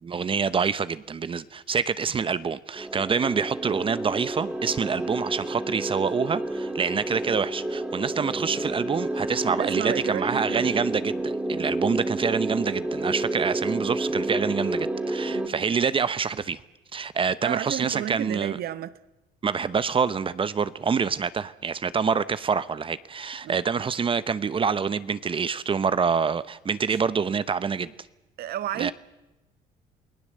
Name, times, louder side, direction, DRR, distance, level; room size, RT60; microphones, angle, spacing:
voice 1, 0.0-16.6 16.9-18.6 19.4-27.9 28.8-28.9, right 6 dB, 30° right, 0.9 m, -26 dB
sound 1, 2.7-15.5, right 1 dB, 5° right, 2.6 m, -30 dB
voice 2, 9.5-10.7 15.3-15.5 17.4-18.9 23.4-23.6 28.4-28.9, right 12 dB, 65° right, 1.2 m, -32 dB
28.5 x 18.5 x 7.7 m
cardioid pair, 110°, 17 cm